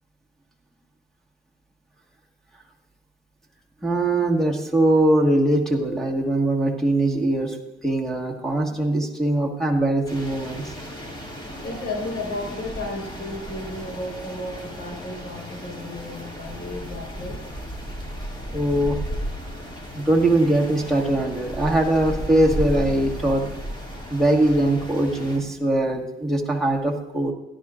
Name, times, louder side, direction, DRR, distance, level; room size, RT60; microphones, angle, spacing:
voice 1, 3.8-7.6 7.8-10.7 18.5-19.0 19.9-23.5 24.1-27.3, right 1 dB, ahead, -2 dB, 1.6 m, -21 dB
sound 1, 10.1-25.4, equal, 25° left, 2.4 m, -34 dB
voice 2, 11.6-17.4, left 2 dB, 60° left, -1 dB, 4.6 m, -33 dB
16.0 x 11.0 x 2.5 m, 0.94 s
cardioid pair, 90°, 20 cm